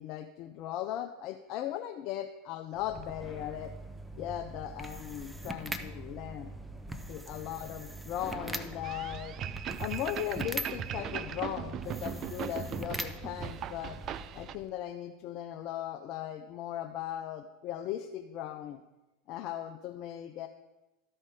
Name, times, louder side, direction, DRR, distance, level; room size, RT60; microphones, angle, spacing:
voice 1, 0.0-3.7 4.1-6.5 7.1-9.3 9.8-14.0 14.3-18.8 19.3-20.5, left 11 dB, 50° left, 5 dB, 0.5 m, -38 dB
sound 1, 2.7-14.7, right 1 dB, 10° right, 0.7 m, -42 dB
sound 2, 8.8-14.6, right 9 dB, 45° right, 0.4 m, -39 dB
13.0 x 4.4 x 4.8 m, 1.0 s
hypercardioid pair, 85°, 0 cm